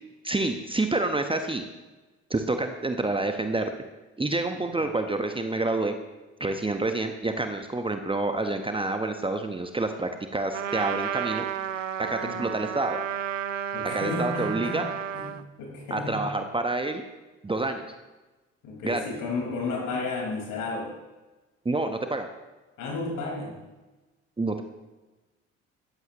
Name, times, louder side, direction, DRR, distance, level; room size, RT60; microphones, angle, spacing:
voice 1, 0.2-1.6 2.3-3.7 4.2-5.9 6.4-11.4 12.0-13.0 13.8-14.8 15.9-17.0 17.4-17.9 18.8-19.0 21.6-22.3 24.4-24.6, right 2 dB, 15° right, 6 dB, 1.2 m, -28 dB
Trumpet, 10.5-15.4, right 9 dB, 85° right, 0.5 m, -32 dB
voice 2, 13.7-14.8 15.1-16.2 18.6-20.9 22.8-23.6, left 3 dB, 55° left, -1 dB, 4.9 m, -33 dB
16.0 x 14.0 x 3.1 m, 1.1 s
figure-of-eight pair, 50°, 37 cm